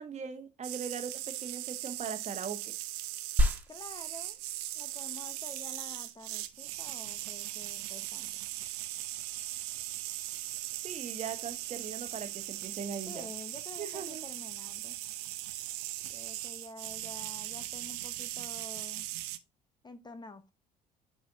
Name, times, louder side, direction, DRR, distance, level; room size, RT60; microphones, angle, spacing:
voice 1, 0.0-2.7 10.7-13.3 13.8-14.2, right 6 dB, 35° right, 1.3 m, -40 dB
sound 1, 0.6-19.4, right 16 dB, 65° right, 0.6 m, -39 dB
sound 2, 3.4-13.4, equal, 5° right, 1.5 m, -38 dB
voice 2, 3.7-4.4 4.7-8.4 13.0-15.0 16.0-19.1 19.8-20.5, left 2 dB, 20° left, 0.8 m, -49 dB
9.7 x 4.2 x 2.7 m
figure-of-eight pair, 50°, 21 cm